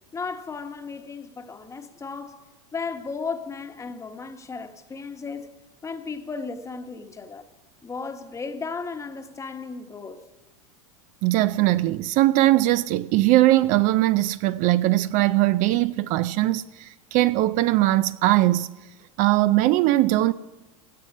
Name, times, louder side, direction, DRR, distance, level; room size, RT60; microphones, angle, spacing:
voice 1, 0.1-2.4 2.7-5.5 5.8-7.5 7.8-10.3, left 4 dB, 15° left, 1.1 m, -35 dB
voice 2, 11.2-18.7 19.2-20.3, right 16 dB, 50° right, 0.4 m, -20 dB
16.5 x 12.0 x 5.4 m
supercardioid pair, 120°, 17 cm